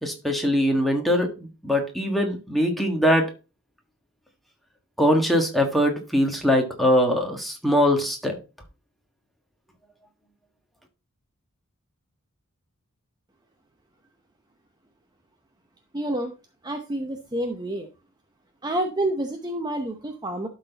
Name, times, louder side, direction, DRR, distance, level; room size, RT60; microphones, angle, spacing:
voice 1, 0.0-3.3 5.0-8.4, equal, ahead, 2 dB, 1.5 m, -22 dB
voice 2, 15.9-16.3 16.6-17.9 18.6-20.5, right 1 dB, 20° right, 3 dB, 0.8 m, -28 dB
11.5 x 4.1 x 4.0 m, 0.32 s
head